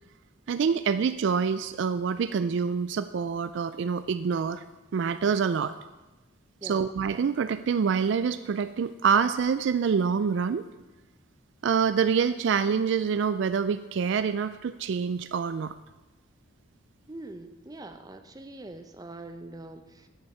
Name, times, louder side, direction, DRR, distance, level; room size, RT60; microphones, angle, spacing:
voice 1, 0.5-4.6 4.9-5.7 6.6-10.7 11.6-15.7, right 6 dB, 55° right, 12 dB, 0.3 m, -26 dB
voice 2, 17.1-20.1, right 2 dB, 20° right, 7 dB, 0.6 m, -43 dB
10.5 x 6.3 x 7.0 m, 1.1 s
head